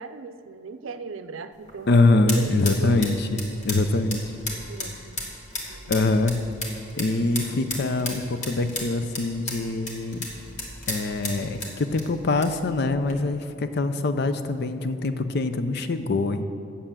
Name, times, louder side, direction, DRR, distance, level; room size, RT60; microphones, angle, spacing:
voice 1, 0.0-1.9 2.3-3.1 3.9-4.0 4.5-5.2 5.7-6.0, right 4 dB, 80° right, 11 dB, 0.5 m, -38 dB
sound 1, 1.5-13.2, left 2 dB, 35° left, 1.6 m, -36 dB
voice 2, 1.9-4.2 5.6-6.4 7.0-10.3 10.9-16.4, left 2 dB, 55° left, 10 dB, 0.5 m, -24 dB
8.9 x 7.0 x 7.3 m, 2.7 s
head